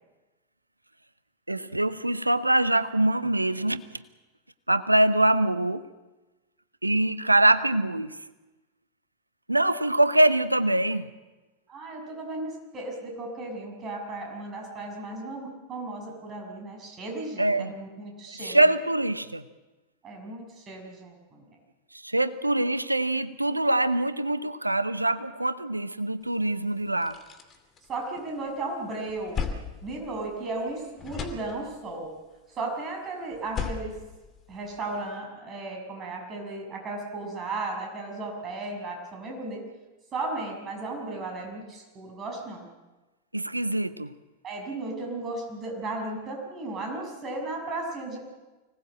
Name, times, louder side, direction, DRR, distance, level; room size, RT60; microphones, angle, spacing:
voice 1, 1.5-3.8 4.7-5.9 6.8-8.1 9.5-11.1 17.4-17.7 18.4-19.4 21.9-27.2 43.3-44.1, right 1 dB, 85° right, 14 dB, 0.8 m, -24 dB
voice 2, 11.7-18.6 20.0-21.4 27.9-29.5 29.8-32.1 32.5-33.9 34.5-39.6 40.1-42.6 44.4-48.2, right 2 dB, 25° right, 2 dB, 6.5 m, -35 dB
sound 1, 26.4-26.5 26.8-28.5 28.9-30.7 31.0-32.0 33.3-35.0, left 6 dB, 25° left, 2.5 m, -37 dB
25.0 x 18.5 x 7.6 m, 1.2 s
figure-of-eight pair, 90°, 0 cm